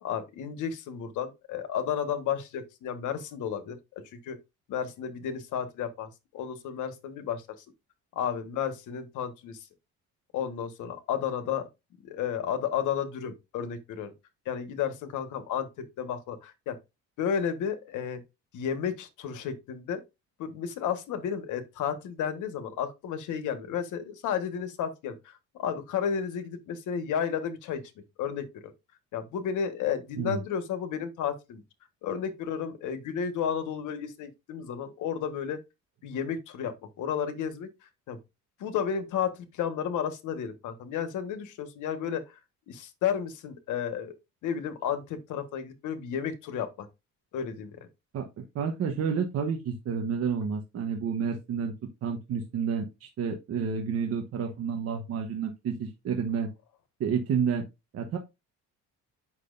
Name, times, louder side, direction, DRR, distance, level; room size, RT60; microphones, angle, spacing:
voice 1, 0.0-4.4 4.7-7.5 8.1-9.7 10.3-11.7 12.0-14.1 14.4-16.8 17.2-18.2 18.5-20.0 20.4-27.8 28.2-28.7 29.1-31.6 32.0-35.6 36.0-38.2 38.6-42.4 42.7-44.1 44.4-46.9 47.3-47.9, left 8 dB, 85° left, 1.5 m, -32 dB
voice 2, 48.5-51.7 52.0-56.5 57.0-57.6 57.9-58.2, right 6 dB, 55° right, 1.1 m, -30 dB
8.6 x 6.2 x 2.6 m
cardioid pair, 160°, 30 cm